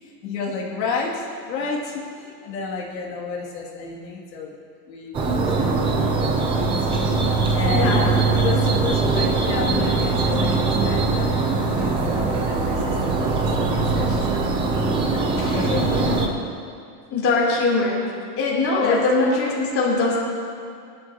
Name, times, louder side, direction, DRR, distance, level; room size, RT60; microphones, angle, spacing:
voice 1, 0.0-4.5 4.9-6.8 7.5-14.2 15.1-16.3 18.8-19.0, left 4 dB, 85° left, -4 dB, 2.7 m, -31 dB
sound 1, 5.1-16.3, right 3 dB, 10° right, 0.5 m, -21 dB
voice 2, 7.7-8.0 14.0-14.2 15.4-16.2 17.1-18.0 18.4-20.2, left 3 dB, 25° left, -5 dB, 3.3 m, -22 dB
20.0 x 12.0 x 2.9 m, 2.4 s
supercardioid pair, 155°, 49 cm